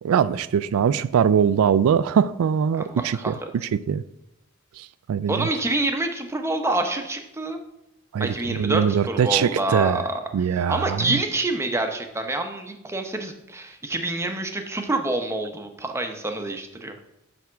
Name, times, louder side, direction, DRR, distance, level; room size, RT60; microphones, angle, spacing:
voice 1, 0.0-4.0 4.8-5.5 8.1-10.1 10.3-11.2, right 7 dB, 80° right, 0.3 m, -22 dB
voice 2, 2.8-3.3 5.3-7.6 8.2-10.2 10.5-16.9, right 2 dB, 15° right, 0.7 m, -27 dB
9.0 x 3.5 x 6.1 m
head